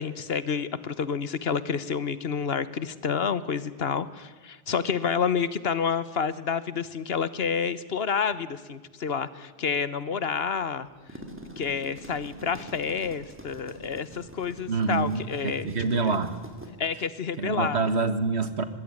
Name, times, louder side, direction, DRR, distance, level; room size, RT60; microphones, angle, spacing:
voice 1, 0.0-10.9 11.6-15.7 16.0-16.2 16.8-17.8, left 6 dB, 65° left, 16 dB, 1.3 m, -29 dB
sound 1, 10.9-16.7, right 1 dB, 10° right, 3.2 m, -45 dB
voice 2, 14.7-16.3 17.4-18.6, right 4 dB, 75° right, 11 dB, 2.0 m, -26 dB
24.5 x 20.5 x 9.8 m, 1.3 s
omnidirectional pair, 1.1 m